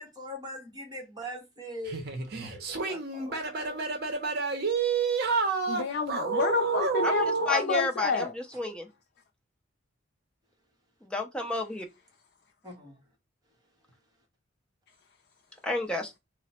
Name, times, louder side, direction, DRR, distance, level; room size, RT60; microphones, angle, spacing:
voice 1, 0.0-2.1 2.4-3.8 12.6-13.0, equal, 20° right, 1.0 m, -42 dB
sound 1, 1.9-7.5, right 5 dB, 55° right, 0.7 m, -29 dB
voice 2, 5.7-8.3, left 5 dB, 55° left, 0.4 m, -29 dB
voice 3, 7.5-8.3 8.6-8.9 11.0-11.9 15.6-16.2, left 2 dB, 5° left, 0.5 m, -31 dB
2.9 x 2.0 x 4.1 m
head